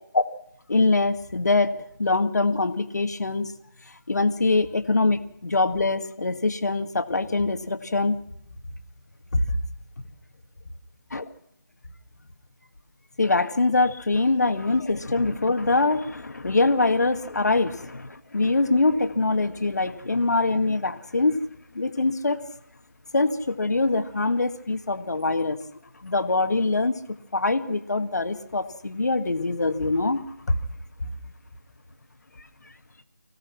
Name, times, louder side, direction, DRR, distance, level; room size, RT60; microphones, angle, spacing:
voice 1, 0.7-1.7 2.0-3.5 3.9-8.2 9.3-9.6 11.1-11.2 13.2-21.4 21.7-22.4 23.1-25.6 26.0-27.0 27.3-30.6 32.4-32.7, left 3 dB, 55° left, 9 dB, 2.0 m, -23 dB
26.0 x 16.5 x 6.0 m, 0.73 s
figure-of-eight pair, 160°, 11 cm